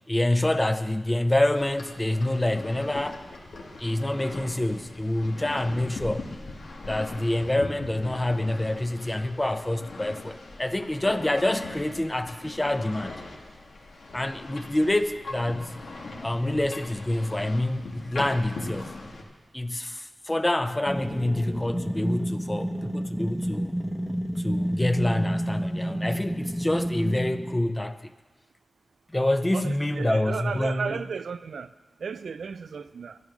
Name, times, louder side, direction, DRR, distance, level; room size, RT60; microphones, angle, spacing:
voice 1, 0.1-3.2 3.8-6.3 6.8-13.2 14.1-15.8 16.2-18.9 19.5-23.7 24.4-28.1 29.1-31.0, left 1 dB, 15° left, 0.7 m, -27 dB
sound 1, 1.5-19.2, left 2 dB, 85° left, 1.8 m, -40 dB
sound 2, 20.9-27.6, right 1 dB, 10° right, 0.9 m, -30 dB
voice 2, 29.5-31.7 32.0-33.2, right 5 dB, 85° right, 0.4 m, -34 dB
12.5 x 11.5 x 6.2 m
wide cardioid pair, 100°, 0 cm